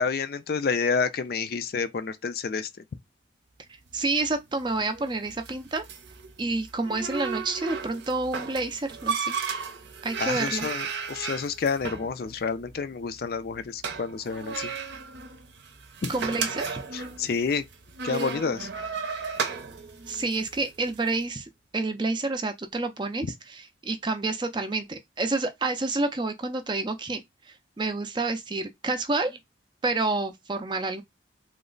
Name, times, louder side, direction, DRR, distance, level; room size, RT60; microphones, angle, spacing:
voice 1, 0.0-2.7 10.2-14.7 16.0-16.1 16.9-17.6 18.0-18.7, left 5 dB, 50° left, 0.4 m, -29 dB
voice 2, 3.9-5.8 6.4-9.4 10.0-10.7 16.1-16.8 20.1-29.4 29.8-31.0, right 3 dB, 25° right, 0.4 m, -29 dB
sound 1, 3.9-21.1, right 5 dB, 70° right, 0.6 m, -35 dB
3.1 x 2.1 x 3.8 m
head